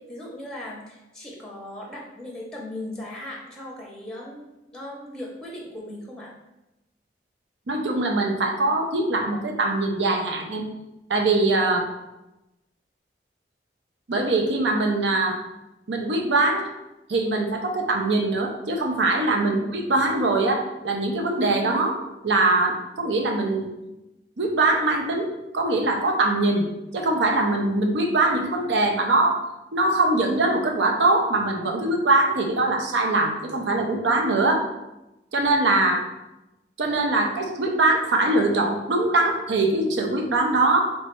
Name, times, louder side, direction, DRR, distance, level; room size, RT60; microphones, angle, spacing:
voice 1, 0.0-6.3, left 1 dB, 5° left, -2 dB, 0.7 m, -38 dB
voice 2, 7.7-10.6 11.1-11.9 14.1-15.4 15.9-16.7 17.1-22.0 22.2-23.7 24.4-26.7 26.9-29.4 29.7-34.7 35.3-36.1 36.8-40.8, right 2 dB, 85° right, 2 dB, 0.7 m, -22 dB
3.3 x 3.1 x 4.5 m, 0.97 s
head